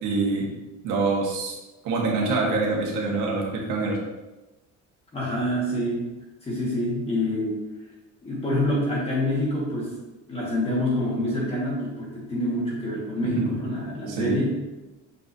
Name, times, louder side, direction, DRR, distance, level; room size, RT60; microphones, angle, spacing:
voice 1, 0.0-0.5 0.8-1.5 1.8-4.0 13.2-13.5 14.1-14.4, right 3 dB, 80° right, -2 dB, 1.5 m, -25 dB
voice 2, 5.1-6.0 6.4-7.6 8.2-9.9 10.3-14.6, left 1 dB, 20° left, -5 dB, 1.7 m, -26 dB
7.0 x 5.3 x 2.7 m, 1.1 s
cardioid pair, 180°, 31 cm